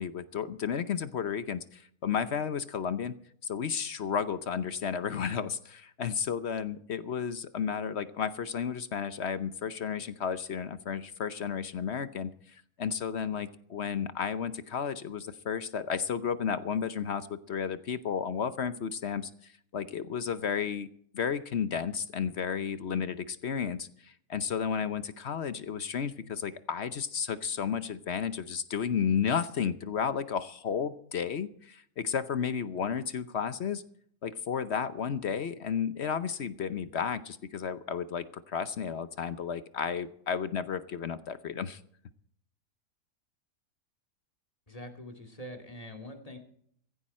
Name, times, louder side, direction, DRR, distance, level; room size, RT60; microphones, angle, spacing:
voice 1, 0.0-3.1 3.4-20.9 21.1-33.8 34.2-41.8, left 7 dB, 55° left, 13 dB, 0.8 m, -33 dB
voice 2, 44.7-46.4, equal, 20° left, 4 dB, 2.5 m, -44 dB
15.5 x 15.0 x 4.3 m, 0.63 s
omnidirectional pair, 1.8 m